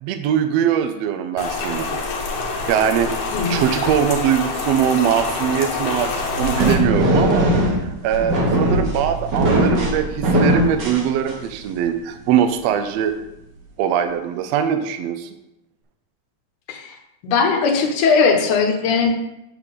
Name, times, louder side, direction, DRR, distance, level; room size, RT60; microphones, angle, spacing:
voice 1, 0.0-2.0 2.7-3.1 3.5-13.2 13.8-15.3, right 9 dB, 75° right, 7 dB, 1.6 m, -21 dB
Rain, 1.4-6.8, left 3 dB, 75° left, 2.5 m, -26 dB
sound 1, 6.0-11.6, equal, 50° right, 1.4 m, -20 dB
voice 2, 17.2-19.1, left 5 dB, 90° left, 2 dB, 2.6 m, -18 dB
8.2 x 3.8 x 6.8 m, 0.90 s
omnidirectional pair, 3.5 m